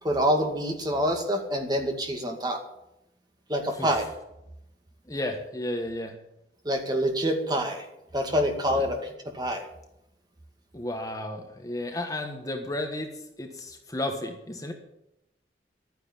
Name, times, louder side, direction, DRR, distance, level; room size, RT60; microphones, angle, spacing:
voice 1, 0.0-2.6 3.5-4.1 6.6-7.8 8.1-9.6, equal, 25° right, 3 dB, 2.2 m, -26 dB
voice 2, 5.1-6.2 8.7-8.8 10.7-13.1 13.4-14.7, left 1 dB, 20° left, 4 dB, 1.4 m, -33 dB
12.5 x 9.6 x 8.9 m, 0.85 s
head